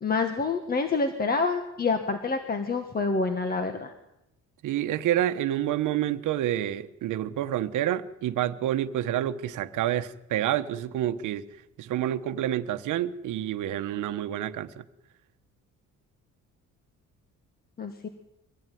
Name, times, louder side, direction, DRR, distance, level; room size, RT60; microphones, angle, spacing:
voice 1, 0.0-3.9 17.8-18.1, left 4 dB, 30° left, 1.7 m, -27 dB
voice 2, 4.6-11.4 11.8-14.8, right 12 dB, 75° right, 1.2 m, -28 dB
23.5 x 16.0 x 9.3 m
cardioid pair, 140°, 31 cm